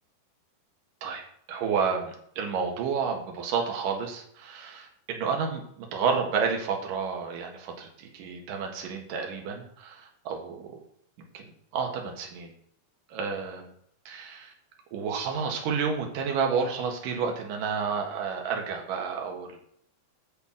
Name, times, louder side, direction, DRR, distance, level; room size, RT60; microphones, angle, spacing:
voice 1, 1.5-10.8 11.3-11.5 11.7-12.5 13.1-13.7 14.1-14.5 14.9-19.6, right 6 dB, 60° right, 2 dB, 3.0 m, -30 dB
8.3 x 6.6 x 6.4 m, 0.65 s
omnidirectional pair, 4.8 m